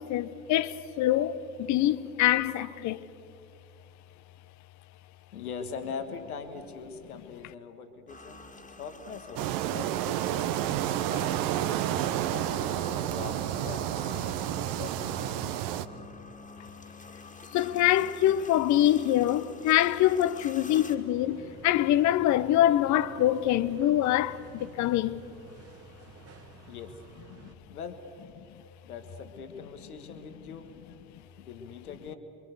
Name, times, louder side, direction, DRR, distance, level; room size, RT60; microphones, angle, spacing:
voice 1, 0.0-3.0 17.5-25.2, left 13 dB, 40° left, 0.8 m, -25 dB
voice 2, 5.3-8.4 8.8-10.6 11.1-11.7 12.3-15.9 26.7-27.0 27.7-28.0 28.8-30.7 31.4-32.2, left 6 dB, 75° left, 1.6 m, -42 dB
sound 1, 8.1-21.0, left 3 dB, 15° left, 2.1 m, -47 dB
sound 2, 9.4-15.9, right 12 dB, 50° right, 1.0 m, -30 dB
sound 3, 21.1-27.5, right 6 dB, 30° right, 1.9 m, -51 dB
29.0 x 23.5 x 6.7 m
figure-of-eight pair, 60°, 44 cm